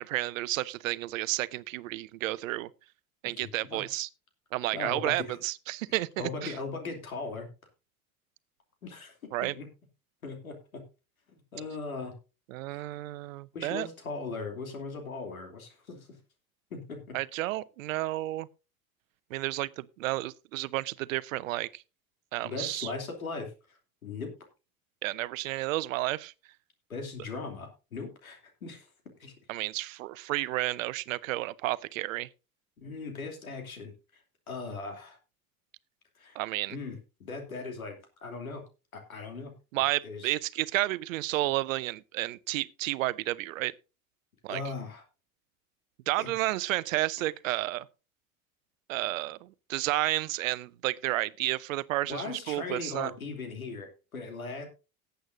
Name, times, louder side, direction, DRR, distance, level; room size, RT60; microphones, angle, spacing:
voice 1, 0.0-2.7 3.2-4.1 4.5-6.5 9.3-9.5 12.5-13.9 17.1-18.5 19.3-21.8 22.3-22.9 25.0-26.3 29.5-32.3 36.3-36.8 39.7-43.7 44.4-44.6 46.1-47.9 48.9-53.1, right 17 dB, 70° right, 0.7 m, -31 dB
voice 2, 3.4-3.8 4.7-5.4 6.2-7.5 8.8-9.1 9.4-9.7 10.2-10.8 11.3-12.1 12.7-12.8 13.5-16.2 16.7-17.2 22.4-24.3 26.9-28.9 29.2-29.3 32.8-34.2 34.5-35.2 36.2-36.4 36.7-38.6 38.9-39.5 40.0-40.3 44.5-45.0 46.2-46.3 47.2-47.3 52.1-54.7, left 4 dB, 85° left, 2.9 m, -39 dB
18.5 x 8.0 x 2.6 m
figure-of-eight pair, 70°, 41 cm